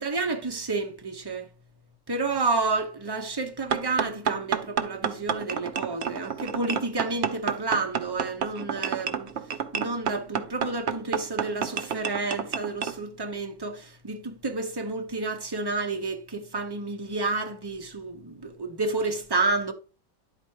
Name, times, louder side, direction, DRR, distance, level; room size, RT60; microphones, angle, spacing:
voice 1, 0.0-1.5 2.1-9.3 9.7-19.7, right 3 dB, 20° right, 0.6 m, -30 dB
sound 1, 3.7-13.0, right 7 dB, 60° right, 0.7 m, -30 dB
11.0 x 4.4 x 4.7 m
omnidirectional pair, 1.9 m